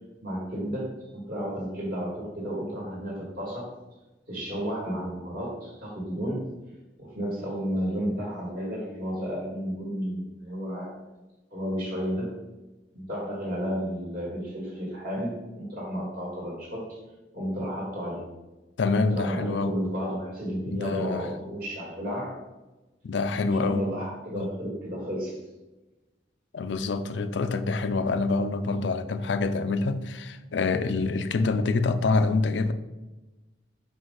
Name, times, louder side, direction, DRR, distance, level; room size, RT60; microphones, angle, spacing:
voice 1, 0.2-3.7 4.3-6.5 7.0-11.0 11.5-12.3 12.9-17.0 17.3-18.3 19.0-22.4 23.3-25.4 27.4-27.5, equal, 55° right, -4 dB, 2.1 m, -32 dB
voice 2, 18.8-19.7 20.7-21.3 23.0-23.9 24.4-24.5 26.5-32.7, left 3 dB, 75° left, 10 dB, 0.5 m, -26 dB
5.4 x 5.2 x 3.9 m, 1.1 s
head